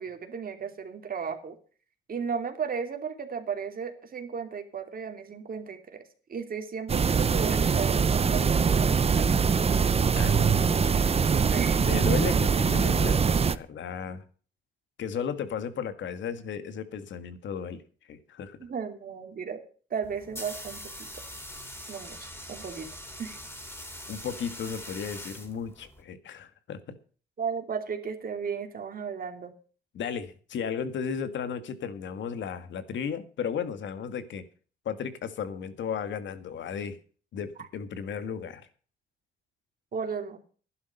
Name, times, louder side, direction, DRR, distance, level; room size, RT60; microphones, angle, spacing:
voice 1, 0.0-1.6 2.1-6.0 6.3-9.4 11.5-12.0 18.6-19.6 19.9-21.1 21.9-22.9 23.2-23.4 27.4-29.5 39.9-40.4, right 6 dB, 45° right, 6 dB, 2.9 m, -35 dB
sound 1, 6.9-13.5, right 6 dB, 30° right, 0.8 m, -23 dB
voice 2, 10.2-11.0 11.8-14.2 15.0-17.8 18.1-18.6 24.1-27.0 29.9-34.4 34.9-37.0 37.3-38.7, left 7 dB, 70° left, 11 dB, 1.9 m, -34 dB
sound 2, 20.0-26.0, equal, 15° left, 4.4 m, -42 dB
12.0 x 11.0 x 5.6 m, 0.41 s
cardioid pair, 90°, 20 cm